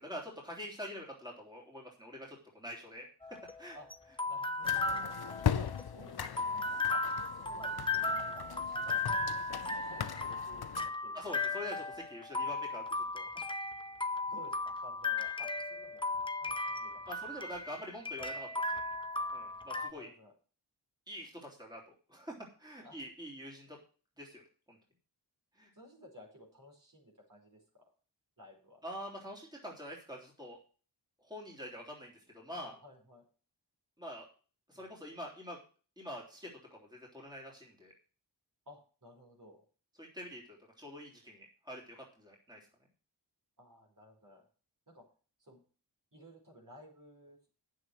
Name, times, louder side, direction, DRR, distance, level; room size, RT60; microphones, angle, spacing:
voice 1, 0.0-3.1 3.6-3.8 11.1-13.3 17.1-18.5 19.3-20.1 21.1-21.8 22.1-23.8 24.2-24.4 24.7-24.8 25.5-25.7 28.8-30.6 31.2-32.7 34.0-34.3 34.7-35.6 36.0-37.9 40.0-42.6, equal, 10° right, -2 dB, 3.6 m, -45 dB
sound 1, 3.2-19.9, left 3 dB, 10° left, 0.9 m, -36 dB
voice 2, 4.3-5.1 5.5-6.4 6.9-9.5 9.8-10.7 11.0-11.2 11.7-11.8 13.3-13.6 14.3-16.1 16.3-17.3 19.8-20.3 22.8-23.0 25.7-27.8 28.4-28.8 32.5-33.2 34.7-34.8 38.7-39.6 43.6-44.5 44.9-45.0 45.4-45.6 46.1-47.4, left 1 dB, 50° right, 1 dB, 4.9 m, -55 dB
sound 2, 4.6-10.9, left 9 dB, 60° left, 0.7 m, -39 dB
9.0 x 7.7 x 6.4 m, 0.38 s
wide cardioid pair, 60°, 42 cm